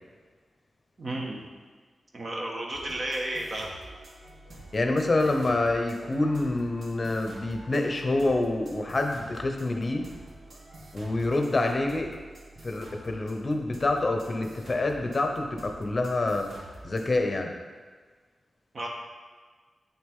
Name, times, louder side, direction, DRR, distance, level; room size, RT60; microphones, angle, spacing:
voice 1, 1.0-1.4 2.1-3.7 18.7-18.9, right 1 dB, 45° right, -1 dB, 1.3 m, -32 dB
sound 1, 2.7-17.2, right 2 dB, 65° right, 1.2 m, -48 dB
voice 2, 4.7-10.0 10.9-12.1 12.6-16.5 16.8-17.5, left 2 dB, 35° left, 4 dB, 0.8 m, -27 dB
8.6 x 6.5 x 3.6 m, 1.5 s
wide cardioid pair, 115°, 0 cm